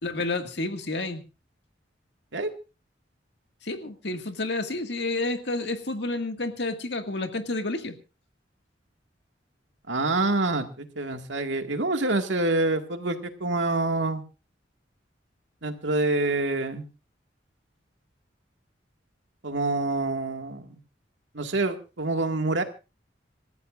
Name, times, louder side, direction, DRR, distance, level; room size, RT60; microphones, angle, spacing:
voice 1, 0.0-1.2 3.6-7.9, left 2 dB, 65° left, 6 dB, 2.0 m, -30 dB
voice 2, 9.9-14.2 15.6-16.9 19.4-20.7 21.3-22.6, right 2 dB, 85° right, 6 dB, 2.0 m, -26 dB
26.5 x 14.5 x 2.5 m, 0.31 s
head